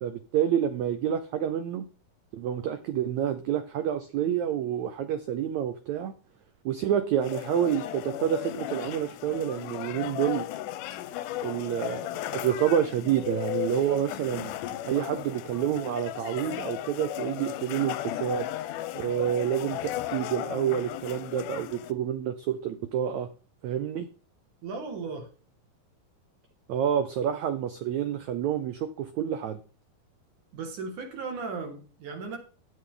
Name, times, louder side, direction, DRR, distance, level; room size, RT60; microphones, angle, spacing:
voice 1, 0.0-1.8 2.3-6.1 6.6-10.4 11.4-14.5 14.8-18.5 18.9-23.3 23.6-24.1 26.7-29.6, right 10 dB, 90° right, 1.6 m, -28 dB
sound 1, 7.2-21.9, left 13 dB, 75° left, 2.0 m, -35 dB
voice 2, 24.6-25.3 30.5-32.4, right 4 dB, 60° right, 3.3 m, -36 dB
14.0 x 8.6 x 3.9 m
omnidirectional pair, 4.3 m